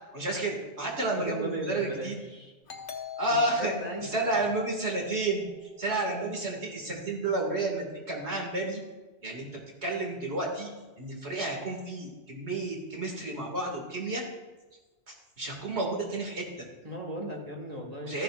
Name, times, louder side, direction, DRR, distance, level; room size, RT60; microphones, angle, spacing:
voice 1, 0.1-2.2 3.2-3.7 4.0-5.4 5.8-8.8 9.2-10.7 11.0-14.2 15.1-16.7 18.0-18.2, right 2 dB, 70° right, -1 dB, 2.5 m, -31 dB
voice 2, 1.2-2.5 3.6-4.3 16.8-18.2, right 1 dB, 35° right, -1 dB, 1.9 m, -37 dB
Doorbell, 2.7-6.0, left 7 dB, 50° left, 1.1 m, -44 dB
13.5 x 11.0 x 2.5 m, 1.2 s
omnidirectional pair, 1.2 m